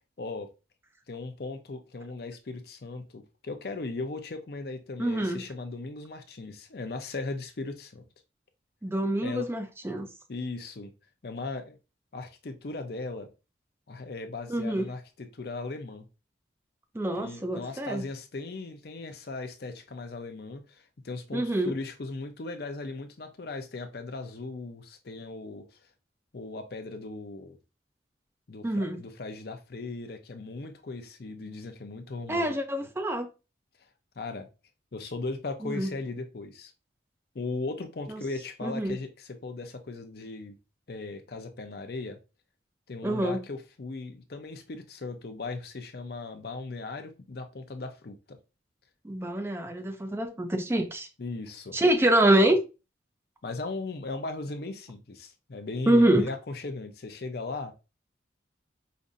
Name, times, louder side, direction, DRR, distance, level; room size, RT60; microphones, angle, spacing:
voice 1, 0.2-0.5 1.1-8.0 9.2-9.5 10.3-10.9 11.2-11.8 12.1-13.3 13.9-16.1 17.2-25.6 26.3-27.6 28.5-32.6 34.2-34.5 34.9-36.7 37.3-40.6 40.9-42.2 42.9-48.4 51.2-51.8 53.4-57.7, left 3 dB, 55° left, 0.5 m, -38 dB
voice 2, 5.0-5.4 8.8-10.1 14.5-14.9 16.9-18.0 21.3-21.7 28.6-29.0 32.3-33.3 35.6-35.9 38.1-38.2 38.6-39.0 43.0-43.4 49.0-51.1 51.7-52.6 55.9-56.3, right 1 dB, 15° right, 0.4 m, -25 dB
5.1 x 2.5 x 2.5 m
head